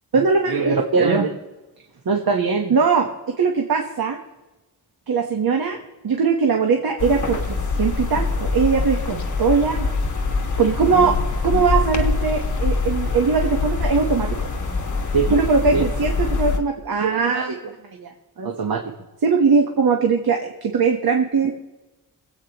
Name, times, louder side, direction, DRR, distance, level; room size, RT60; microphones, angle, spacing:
voice 1, 0.1-1.3 2.0-4.2 5.1-5.8 6.0-9.9 10.6-11.2 11.4-14.5 15.1-18.1 18.4-18.8 19.2-21.5, right 5 dB, 75° right, 3 dB, 1.3 m, -20 dB
sound 1, 7.0-16.6, left 3 dB, 55° left, 1.5 m, -24 dB
26.0 x 8.7 x 3.0 m, 1.1 s
wide cardioid pair, 105°, 37 cm